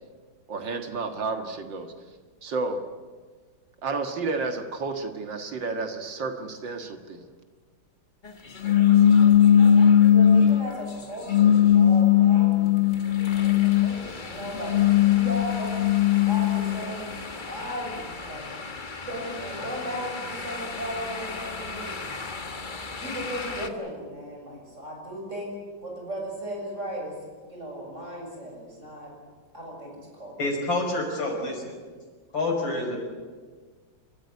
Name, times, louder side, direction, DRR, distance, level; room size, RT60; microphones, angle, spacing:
voice 1, 0.5-1.9 2.4-2.8 3.8-7.2, right 3 dB, 75° right, 6 dB, 2.4 m, -31 dB
sound 1, 8.2-23.7, left 3 dB, 30° left, 1.3 m, -38 dB
sound 2, 8.6-10.7 11.3-14.0 14.5-16.8, left 9 dB, 50° left, 0.8 m, -18 dB
voice 2, 10.0-15.8 16.2-17.2 17.4-18.5 19.0-22.0 22.6-27.2 27.4-29.1 29.5-30.3, equal, 40° right, 0 dB, 7.5 m, -36 dB
voice 3, 30.4-31.7 32.3-33.0, left 2 dB, 75° left, 1 dB, 6.1 m, -27 dB
27.5 x 14.0 x 9.8 m, 1.5 s
omnidirectional pair, 2.0 m